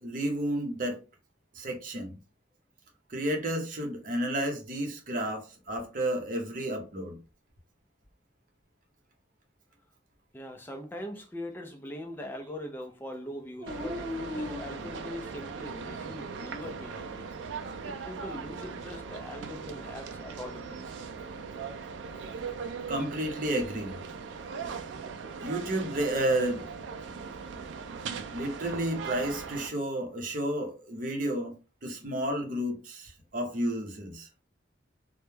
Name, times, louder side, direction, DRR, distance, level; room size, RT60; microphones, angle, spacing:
voice 1, 0.0-1.0 1.5-2.2 3.1-7.2 22.9-23.9 25.4-26.6 28.3-31.5 31.8-34.3, right 1 dB, 50° right, 0.6 m, -31 dB
voice 2, 10.3-17.3 17.8-20.8 22.6-22.7, left 1 dB, 10° left, 0.3 m, -41 dB
Dog, 13.6-15.5 16.1-16.9 19.2-20.0, left 1 dB, 30° right, 1.2 m, -40 dB
sound 1, 13.7-29.7, right 5 dB, 90° right, 0.3 m, -39 dB
2.2 x 2.1 x 3.0 m
head